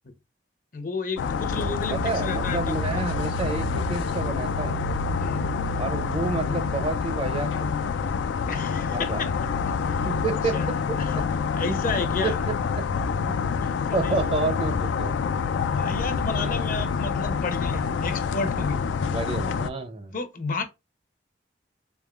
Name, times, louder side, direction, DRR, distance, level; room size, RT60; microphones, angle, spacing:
voice 1, 0.7-2.9 5.2-5.5 8.5-9.3 9.8-10.1 10.5-10.7 11.0-11.1 11.5-12.4 13.6-14.1 15.7-18.9 20.1-20.6, left 3 dB, 50° left, 0.7 m, -32 dB
sound 1, 1.2-19.7, left 5 dB, 90° left, 0.3 m, -27 dB
voice 2, 1.9-4.8 5.8-7.9 8.9-9.2 10.0-10.6 10.9-11.2 12.2-12.3 13.9-15.1 16.3-16.8 19.1-20.1, right 3 dB, 30° right, 0.5 m, -30 dB
3.6 x 3.5 x 2.3 m
head